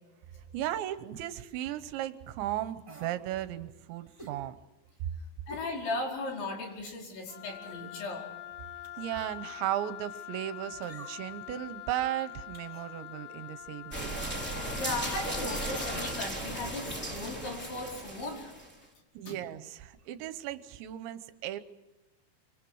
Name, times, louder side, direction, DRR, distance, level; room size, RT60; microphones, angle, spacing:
voice 1, 0.3-4.6 9.0-14.2 19.1-21.6, right 13 dB, 80° right, 12 dB, 3.1 m, -36 dB
sound 1, 2.8-3.2 4.2-4.4 5.5-5.7 6.2-6.3 7.5-7.9 8.8-9.2 10.8-11.4 12.5-12.9 14.2-14.5 15.6-15.9 16.8-17.0 17.3-17.4, right 2 dB, 20° right, 4.8 m, -50 dB
voice 2, 5.5-8.2 14.8-18.5 19.3-19.4, left 2 dB, 75° left, -1 dB, 7.3 m, -37 dB
Wind instrument woodwind instrument, 7.3-16.4, left 14 dB, 55° left, 2.3 m, -45 dB
sound 2, 13.9-18.8, right 1 dB, 5° left, 2.6 m, -36 dB
26.5 x 25.5 x 4.8 m, 1.1 s
omnidirectional pair, 5.3 m